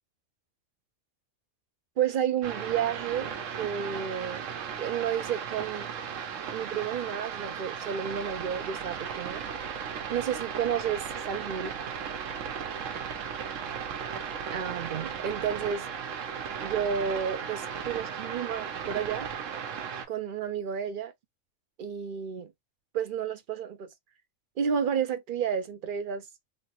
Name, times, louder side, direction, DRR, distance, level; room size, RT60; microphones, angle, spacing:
voice 1, 2.0-4.5 4.8-5.9 6.5-9.4 10.1-11.7 14.5-15.9 16.6-19.3 20.1-21.1 21.8-22.5 22.9-23.9 24.6-26.3, right 8 dB, 60° right, 0.5 m, -31 dB
sound 1, 2.4-20.1, right 7 dB, 85° right, 1.1 m, -36 dB
3.2 x 2.0 x 2.9 m
omnidirectional pair, 1.3 m